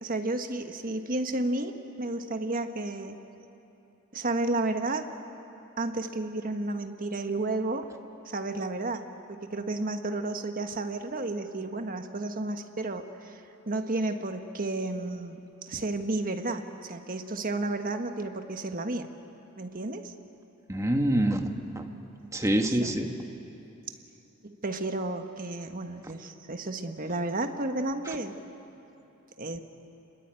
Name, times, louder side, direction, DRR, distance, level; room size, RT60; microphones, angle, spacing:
voice 1, 0.0-3.2 4.1-5.1 5.8-7.9 8.3-13.4 13.7-19.1 19.6-20.1 22.8-22.9 24.4-28.4 29.4-29.6, right 2 dB, 40° right, 6 dB, 1.4 m, -32 dB
voice 2, 20.7-21.8 22.3-23.1, right 1 dB, 15° right, 4 dB, 1.5 m, -26 dB
29.5 x 21.5 x 9.0 m, 2.9 s
head